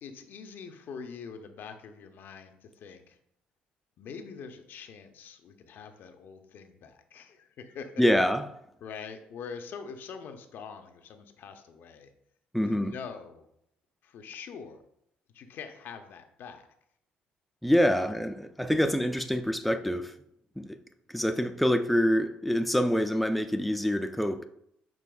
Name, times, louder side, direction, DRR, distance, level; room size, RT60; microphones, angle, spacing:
voice 1, 0.0-3.2 4.0-8.0 8.8-12.1 12.6-13.5 14.0-14.8 15.3-16.7 18.0-18.1, left 6 dB, 65° left, 0.5 m, -44 dB
voice 2, 8.0-8.5 12.5-12.9 17.6-20.1 20.6-20.8 21.1-24.4, equal, ahead, 0.3 m, -26 dB
6.2 x 3.0 x 2.2 m
supercardioid pair, 65°, 4 cm